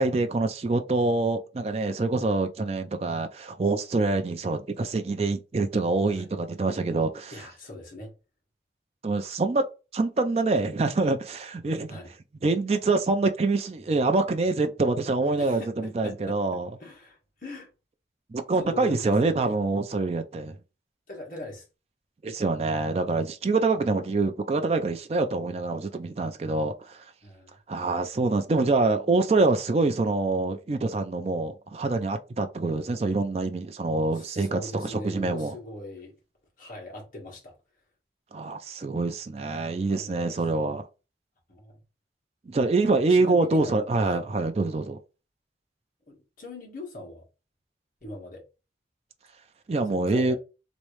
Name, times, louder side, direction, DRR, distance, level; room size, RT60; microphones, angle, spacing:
voice 1, 0.0-7.3 9.0-9.6 9.9-12.0 12.4-16.7 18.3-20.5 22.2-27.1 27.7-35.5 38.3-40.9 42.5-45.0 49.7-50.4, right 3 dB, 35° right, 0.3 m, -25 dB
voice 2, 7.3-8.1 11.9-12.1 15.4-16.4 16.8-17.7 18.6-19.4 21.1-21.7 27.2-27.6 34.1-36.2 36.6-37.5 39.9-40.4 41.5-41.8 42.8-44.2 46.1-47.2 48.0-48.4 49.9-50.4, left 1 dB, 50° left, 1.4 m, -41 dB
3.1 x 2.6 x 3.1 m
head